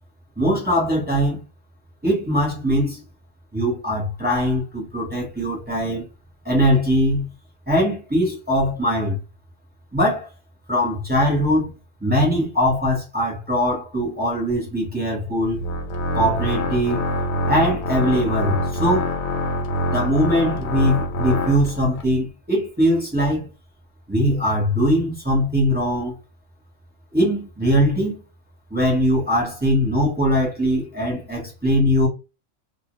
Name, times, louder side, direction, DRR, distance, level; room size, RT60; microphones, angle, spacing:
voice 1, 0.4-1.4 2.0-3.0 3.5-6.1 6.4-7.3 7.7-9.2 9.9-10.3 10.7-15.6 16.1-17.1 17.5-19.1 19.9-23.5 24.1-26.1 27.1-28.2 28.7-32.1, equal, 10° right, 0.7 m, -21 dB
Organ, 15.4-22.0, left 1 dB, 80° left, 1.0 m, -25 dB
2.2 x 2.1 x 3.0 m
omnidirectional pair, 1.4 m